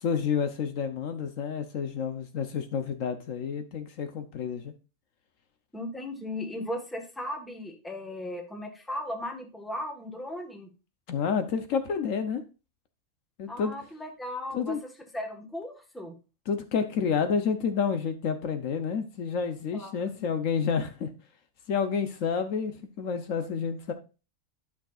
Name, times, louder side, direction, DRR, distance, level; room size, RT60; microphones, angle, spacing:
voice 1, 0.0-4.7 11.1-12.4 13.4-13.7 14.5-14.8 16.5-21.1 21.7-23.9, left 6 dB, 70° left, 8 dB, 1.1 m, -29 dB
voice 2, 5.7-10.7 13.5-16.2 19.7-20.0, left 1 dB, ahead, 3 dB, 1.2 m, -37 dB
11.5 x 6.1 x 2.4 m, 0.32 s
omnidirectional pair, 1.5 m